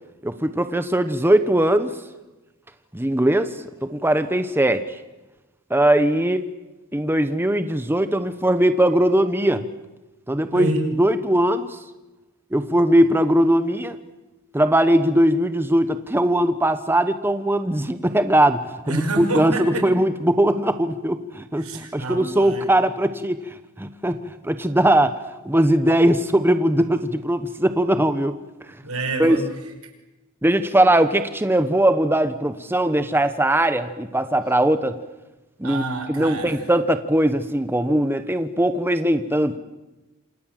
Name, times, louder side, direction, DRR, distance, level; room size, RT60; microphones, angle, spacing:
voice 1, 0.2-2.0 2.9-5.0 5.7-6.5 6.9-9.7 10.3-10.7 11.0-11.8 12.5-14.0 14.5-25.2 25.4-28.4 29.2-29.4 30.4-35.0 35.6-35.8 36.1-39.6, right 1 dB, 10° right, 10 dB, 1.0 m, -20 dB
voice 2, 10.5-10.9 18.8-19.9 21.6-22.7 28.8-29.4 29.8-29.9 35.6-36.7, right 2 dB, 80° right, 6 dB, 5.5 m, -28 dB
27.5 x 27.5 x 7.7 m, 1.1 s
head